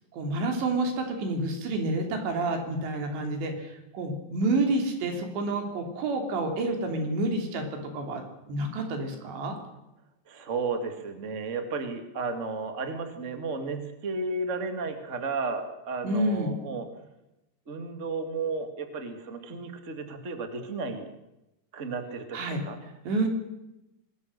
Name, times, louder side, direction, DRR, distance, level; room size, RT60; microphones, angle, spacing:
voice 1, 0.1-7.7 7.9-8.2 8.5-9.5 16.0-16.5 22.3-22.6 23.0-23.3, right 2 dB, 75° right, 4 dB, 5.6 m, -29 dB
voice 2, 10.3-16.8 17.7-21.1 21.7-22.8, right 3 dB, 30° right, 7 dB, 1.4 m, -33 dB
25.5 x 20.0 x 6.7 m, 0.92 s
omnidirectional pair, 5.1 m